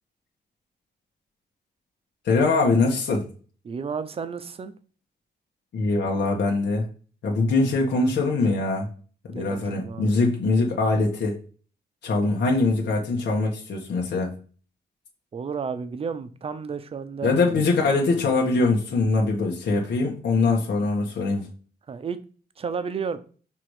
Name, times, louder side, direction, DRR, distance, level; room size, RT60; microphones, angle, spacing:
voice 1, 2.2-3.3 5.7-6.9 7.2-8.9 9.3-11.4 12.0-14.3 17.2-21.5, left 3 dB, 85° left, 1.6 m, -22 dB
voice 2, 3.6-4.7 9.3-10.1 15.3-17.3 21.9-22.2 22.6-23.2, right 6 dB, 35° right, 0.6 m, -32 dB
6.0 x 3.6 x 4.9 m
wide cardioid pair, 165°, 18 cm